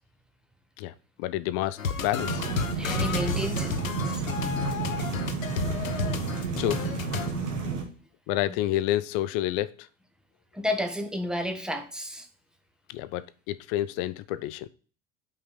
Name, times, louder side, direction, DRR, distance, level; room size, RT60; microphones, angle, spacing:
voice 1, 0.8-2.4 5.6-5.9 6.6-6.9 8.3-9.9 12.9-14.7, left 14 dB, 50° left, 0.6 m, -29 dB
sound 1, 1.8-7.3, left 6 dB, 90° left, 0.7 m, -32 dB
sound 2, 2.2-7.8, right 5 dB, 70° right, 1.8 m, -31 dB
voice 2, 2.8-3.7 4.1-4.2 10.5-12.3, left 1 dB, ahead, 1.2 m, -31 dB
5.6 x 4.9 x 5.6 m
figure-of-eight pair, 70°, 39 cm